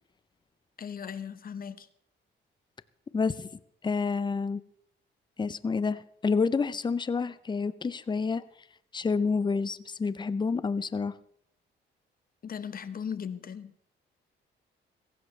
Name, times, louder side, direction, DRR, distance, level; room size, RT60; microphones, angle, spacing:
voice 1, 0.8-1.9 12.4-13.9, left 7 dB, 45° left, 1.0 m, -38 dB
voice 2, 3.1-3.5 3.8-4.6 5.4-8.4 8.9-11.2, left 4 dB, 20° left, 0.6 m, -28 dB
16.0 x 15.5 x 3.3 m
cardioid pair, 90°, 20 cm